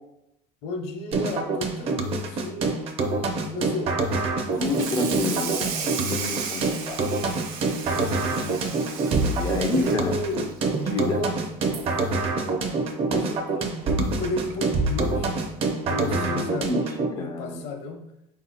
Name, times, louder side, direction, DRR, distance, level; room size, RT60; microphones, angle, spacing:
voice 1, 0.6-2.7 3.4-3.9 7.7-8.6 9.7-10.5 11.0-11.5 13.1-13.7 14.2-15.3 15.8-16.7 17.1-18.0, left 2 dB, 70° left, 3 dB, 0.9 m, -33 dB
sound 1, 1.1-17.1, right 3 dB, 35° right, 0.5 m, -26 dB
Water tap faucet / Sink (filling or washing), 4.5-11.2 11.6-11.8 12.2-12.3 12.7-12.8 13.9-14.0 14.5-14.7, right 6 dB, 75° right, 0.7 m, -35 dB
voice 2, 4.6-7.3 9.2-10.1 10.9-11.2 16.0-16.8 17.2-17.6, left 3 dB, 20° left, 6 dB, 0.3 m, -29 dB
4.2 x 2.8 x 4.0 m, 0.80 s
cardioid pair, 150°, 17 cm